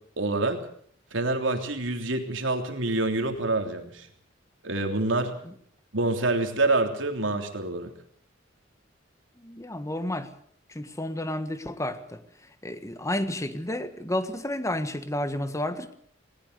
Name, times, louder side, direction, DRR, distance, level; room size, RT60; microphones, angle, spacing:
voice 1, 0.2-0.6 1.1-4.1 4.6-5.3 5.9-7.9, right 2 dB, 85° right, 5 dB, 3.3 m, -26 dB
voice 2, 9.4-10.3 10.7-12.2 12.6-15.9, left 1 dB, 15° left, 10 dB, 1.5 m, -31 dB
19.5 x 19.5 x 6.8 m, 0.62 s
head